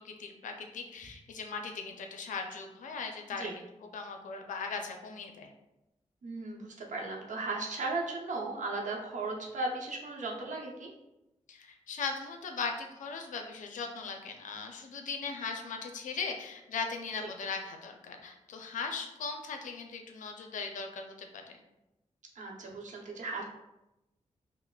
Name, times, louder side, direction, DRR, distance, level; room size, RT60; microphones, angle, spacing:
voice 1, 0.0-3.5 3.9-5.5 11.5-21.4, left 5 dB, 90° left, 4 dB, 0.5 m, -39 dB
voice 2, 6.2-10.9 17.2-17.3 22.3-23.4, right 3 dB, 75° right, -1 dB, 0.7 m, -36 dB
5.4 x 2.0 x 2.3 m, 0.94 s
cardioid pair, 55°, 13 cm